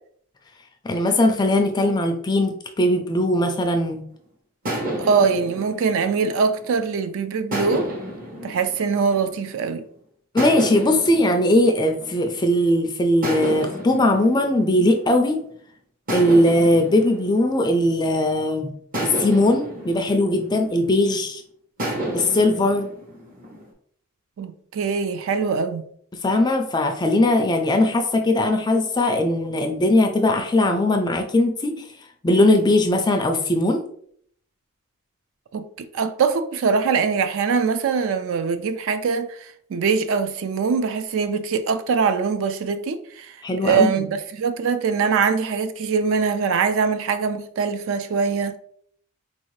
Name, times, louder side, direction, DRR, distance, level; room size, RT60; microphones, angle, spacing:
voice 1, 0.8-4.1 10.3-15.4 16.1-18.8 19.0-21.4 22.1-22.9 26.2-31.9 32.2-33.8 43.4-44.1, left 1 dB, 20° left, 0.3 m, -19 dB
sound 1, 4.6-6.9 7.5-9.8 10.4-12.6 13.2-15.5 16.1-18.3 18.9-21.2 21.8-23.6, right 1 dB, 40° right, 0.9 m, -32 dB
voice 2, 5.0-7.9 8.4-9.8 24.4-25.8 35.5-43.4 43.6-48.6, right 5 dB, 60° right, 0.3 m, -23 dB
4.1 x 2.6 x 3.1 m
head